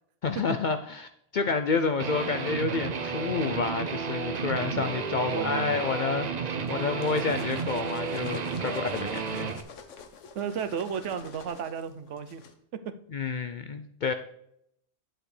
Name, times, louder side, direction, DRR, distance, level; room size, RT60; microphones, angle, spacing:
voice 1, 0.2-9.6 13.1-14.1, left 4 dB, 60° left, 8 dB, 0.5 m, -29 dB
Guitar, 2.0-9.6, right 5 dB, 45° right, 0.6 m, -32 dB
voice 2, 5.3-6.0 10.3-12.4, right 7 dB, 75° right, 10 dB, 1.0 m, -33 dB
sound 1, 6.7-12.5, left 5 dB, 80° left, 1.2 m, -46 dB
10.0 x 7.8 x 3.2 m, 0.74 s
omnidirectional pair, 1.2 m